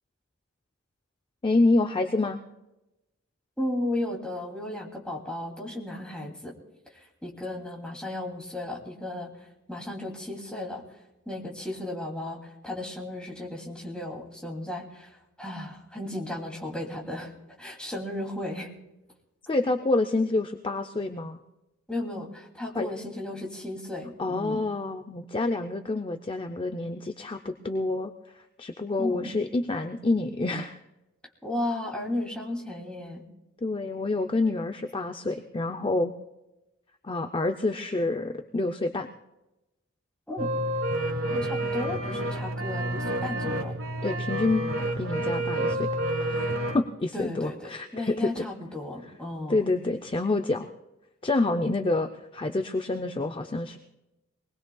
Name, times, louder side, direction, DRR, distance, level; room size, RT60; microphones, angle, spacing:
voice 1, 1.4-2.4 19.5-21.4 22.8-22.9 24.2-30.8 33.6-36.1 37.0-39.1 44.0-44.7 45.0-48.4 49.5-50.7 51.2-53.8, left 2 dB, 25° left, 6 dB, 0.6 m, -28 dB
voice 2, 3.6-6.5 6.9-9.3 9.7-10.8 11.3-17.3 17.6-18.7 21.9-24.6 29.0-29.3 31.4-33.2 40.3-40.5 41.3-43.7 47.1-49.6, left 1 dB, 5° left, -2 dB, 2.7 m, -34 dB
sound 1, 40.4-46.8, right 1 dB, 75° right, 1.6 m, -29 dB
23.5 x 19.5 x 2.3 m, 0.96 s
head